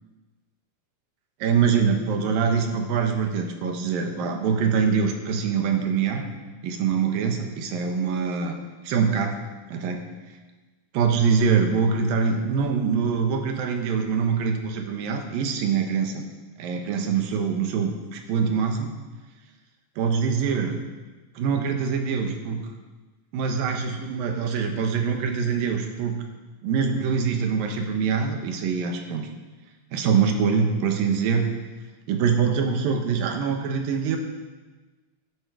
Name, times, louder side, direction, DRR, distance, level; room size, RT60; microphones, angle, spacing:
voice 1, 1.4-6.3 6.6-8.6 8.8-9.4 9.7-10.0 10.9-16.2 16.6-18.9 20.0-20.8 21.4-22.6 23.3-26.2 26.6-29.3 29.9-31.5 32.1-34.2, right 6 dB, 75° right, 4 dB, 2.8 m, -24 dB
12.5 x 11.5 x 4.9 m, 1.3 s
omnidirectional pair, 4.4 m